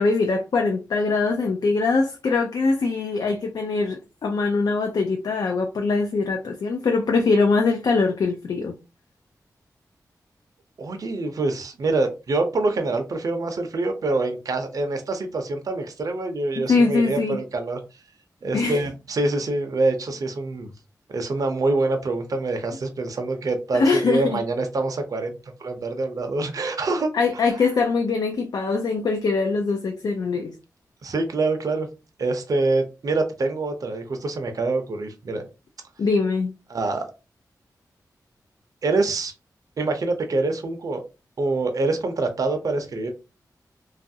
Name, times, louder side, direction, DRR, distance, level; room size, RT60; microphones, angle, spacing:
voice 1, 0.0-8.8 16.6-17.4 18.5-18.8 23.7-24.4 27.1-30.5 36.0-36.5, left 4 dB, 75° left, 0.4 m, -22 dB
voice 2, 10.8-17.8 18.4-20.7 21.1-27.5 31.0-31.9 32.2-35.4 36.7-37.0 38.8-39.3 39.8-41.0 41.4-43.1, right 3 dB, 60° right, 0.5 m, -25 dB
2.9 x 2.4 x 2.6 m
wide cardioid pair, 100°, 7 cm